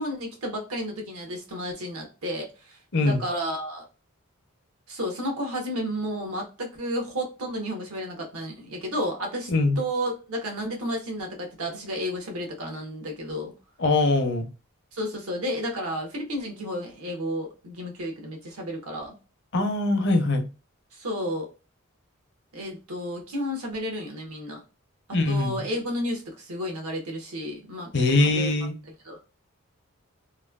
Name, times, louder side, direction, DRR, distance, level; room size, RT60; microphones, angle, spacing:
voice 1, 0.0-3.9 4.9-9.5 9.8-13.5 14.9-19.2 20.9-21.5 22.5-24.6 25.1-27.9 28.2-28.5 28.9-29.2, equal, 85° right, 2 dB, 1.0 m, -32 dB
voice 2, 13.8-14.5 19.5-20.4 25.1-25.6 27.9-28.7, left 2 dB, 55° left, 5 dB, 0.6 m, -22 dB
3.0 x 2.2 x 2.2 m, 0.32 s
head